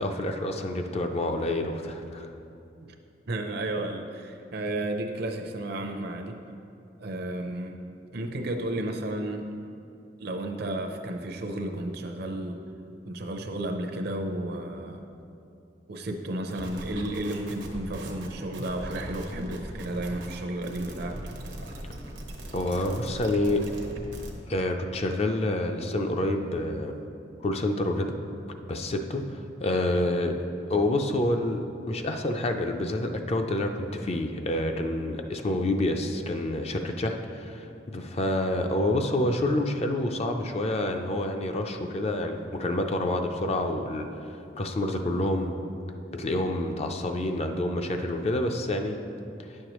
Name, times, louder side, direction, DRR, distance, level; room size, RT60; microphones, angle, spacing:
voice 1, 0.0-2.3 22.5-23.6 24.5-26.9 27.4-28.1 28.7-30.3 30.7-45.5 46.2-49.0, left 1 dB, 35° left, 5 dB, 0.5 m, -28 dB
voice 2, 3.3-6.4 7.0-7.8 8.1-9.5 10.2-12.6 13.0-15.0 15.9-21.4, right 1 dB, 60° right, 4 dB, 0.6 m, -32 dB
sound 1, 16.5-24.3, right 1 dB, 90° right, 1.0 m, -40 dB
9.7 x 6.5 x 3.0 m, 2.7 s
head